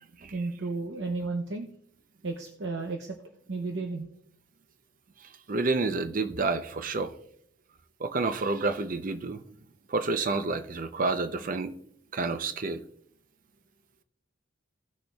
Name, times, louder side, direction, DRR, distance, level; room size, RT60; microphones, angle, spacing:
voice 1, 0.3-1.7 2.2-3.2 3.5-4.1, right 3 dB, 85° right, 0.8 m, -33 dB
voice 2, 5.5-7.1 8.0-9.4 9.9-11.7 12.1-12.8, right 3 dB, 50° right, 0.6 m, -29 dB
17.5 x 6.3 x 2.3 m
head